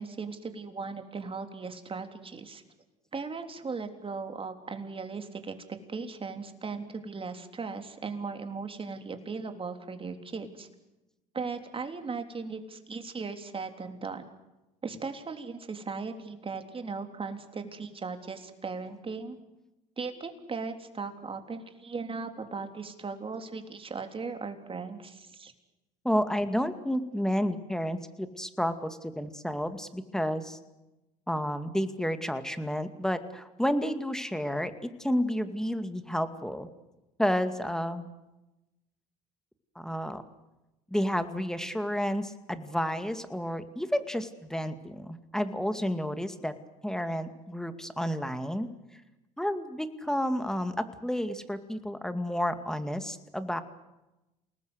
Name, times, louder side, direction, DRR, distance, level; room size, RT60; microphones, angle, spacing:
voice 1, 0.0-2.6 3.1-5.5 5.9-10.7 11.3-14.2 14.8-19.4 20.0-25.5, right 4 dB, 30° right, 6 dB, 3.4 m, -38 dB
voice 2, 26.0-30.6 31.3-36.7 37.2-38.1 39.8-40.2 40.9-46.5 46.8-48.7 49.4-53.6, equal, 5° left, 9 dB, 2.3 m, -31 dB
28.5 x 19.5 x 8.2 m, 1.0 s
hypercardioid pair, 75°, 19 cm